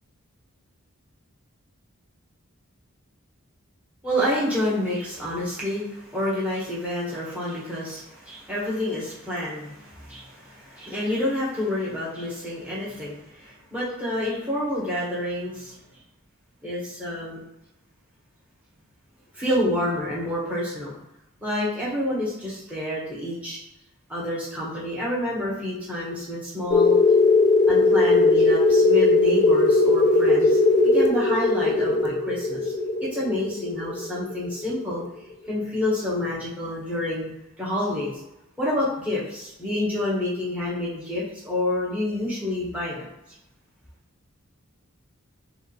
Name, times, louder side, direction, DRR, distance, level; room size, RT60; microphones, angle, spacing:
voice 1, 4.0-15.7 16.6-17.4 19.3-20.9 21.4-23.6 24.1-27.0 27.7-30.6 30.8-32.7 33.0-35.0 35.5-37.3 37.6-38.1 38.6-43.1, left 1 dB, 5° right, -7 dB, 1.4 m, -28 dB
sound 1, 26.7-35.0, left 3 dB, 35° left, 0.4 m, -19 dB
5.6 x 2.7 x 3.2 m, 0.87 s
head